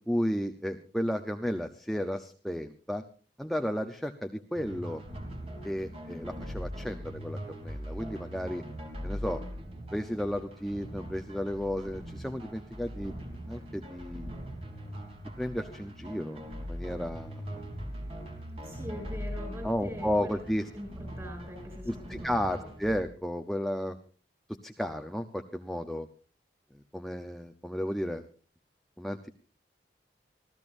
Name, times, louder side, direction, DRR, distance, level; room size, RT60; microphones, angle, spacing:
voice 1, 0.0-3.0 3.4-5.0 5.6-8.6 9.0-9.4 9.9-13.1 13.5-14.3 15.4-16.4 16.7-17.6 19.6-20.7 21.9-24.0 24.5-26.1 26.7-28.3 29.0-29.3, equal, ahead, 6 dB, 0.8 m, -33 dB
sound 1, 4.5-23.0, equal, 30° right, 3.5 m, -41 dB
voice 2, 18.6-20.4 20.7-22.7, equal, 15° right, 3 dB, 7.9 m, -43 dB
26.0 x 15.0 x 2.7 m, 0.38 s
head